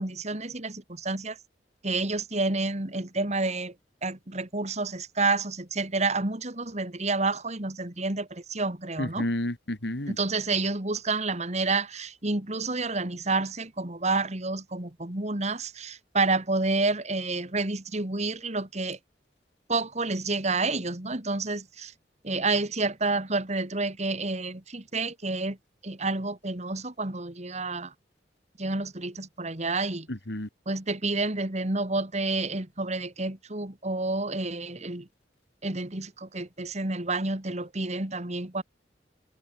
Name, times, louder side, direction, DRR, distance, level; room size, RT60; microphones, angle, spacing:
voice 1, 0.0-1.4 1.8-3.7 4.0-9.3 10.2-19.0 19.7-21.9 22.2-25.6 25.8-27.9 28.6-30.1 30.7-35.1 35.6-38.6, right 3 dB, 40° right, 2.3 m, -29 dB
voice 2, 9.0-10.2 30.1-30.5, left 1 dB, 70° left, 2.7 m, -31 dB
head